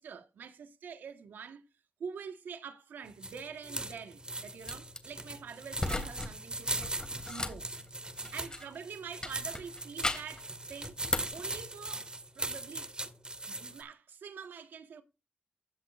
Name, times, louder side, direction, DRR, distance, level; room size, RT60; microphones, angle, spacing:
voice 1, 0.0-1.6 2.0-7.0 7.3-7.7 8.3-11.0 11.3-12.9 13.5-15.0, right 6 dB, 80° right, 1.6 m, -46 dB
sound 1, 3.1-13.8, right 2 dB, 30° right, 2.2 m, -40 dB
sound 2, 4.6-5.0 5.8-6.3 6.6-8.8 9.2-10.4 10.8-11.4, left 2 dB, 25° left, 3.1 m, -36 dB
16.0 x 8.0 x 2.6 m
cardioid pair, 55°, 3 cm